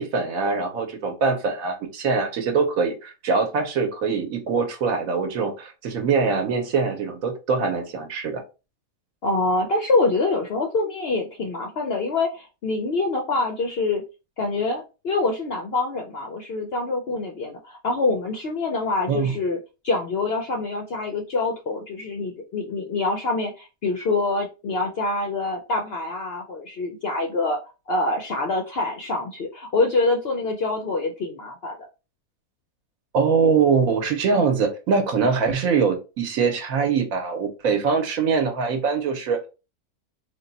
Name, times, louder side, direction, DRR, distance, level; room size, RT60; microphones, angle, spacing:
voice 1, 0.0-8.4 19.1-19.4 33.1-39.5, right 5 dB, 65° right, 5 dB, 1.2 m, -23 dB
voice 2, 9.2-14.0 14.4-19.6 19.8-27.6 27.9-31.8, left 3 dB, 65° left, 2 dB, 0.6 m, -25 dB
3.5 x 2.2 x 3.9 m, 0.30 s
omnidirectional pair, 1.6 m